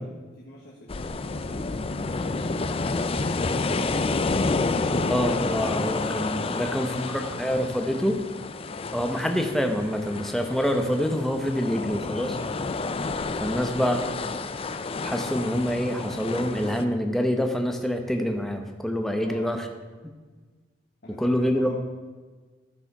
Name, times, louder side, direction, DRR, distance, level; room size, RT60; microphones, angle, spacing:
voice 1, 0.0-5.1 6.5-7.6 8.7-8.9 13.5-13.8 19.2-19.8 21.0-21.8, left 1 dB, 55° left, -4 dB, 1.4 m, -45 dB
sound 1, 0.9-16.8, left 3 dB, 30° left, 0.4 m, -29 dB
voice 2, 5.1-8.2 8.9-12.4 13.4-14.5 15.0-19.7 21.2-21.8, equal, ahead, 4 dB, 0.8 m, -26 dB
14.0 x 4.9 x 5.8 m, 1.4 s
head